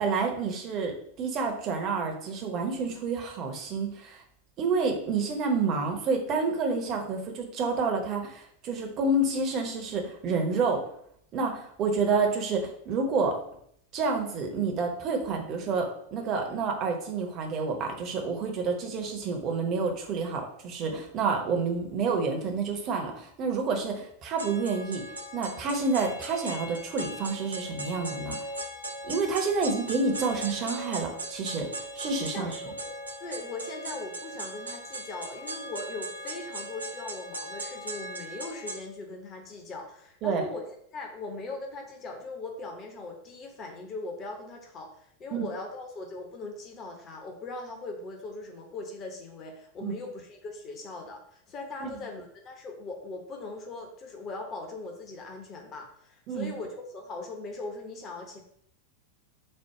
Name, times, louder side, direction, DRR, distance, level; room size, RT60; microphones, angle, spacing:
voice 1, 0.0-4.2 4.6-10.8 11.3-13.4 13.9-25.0 25.3-28.4 29.0-31.7 32.0-32.5 40.2-40.5 45.3-45.4 49.8-49.9 51.8-51.9 56.3-56.5, right 4 dB, 35° right, 3 dB, 0.9 m, -29 dB
sound 1, 24.4-38.8, right 1 dB, 80° right, 0.7 m, -38 dB
voice 2, 32.3-58.4, left 3 dB, 30° left, 2 dB, 0.9 m, -40 dB
4.4 x 2.3 x 4.7 m, 0.68 s
figure-of-eight pair, 90°, 0 cm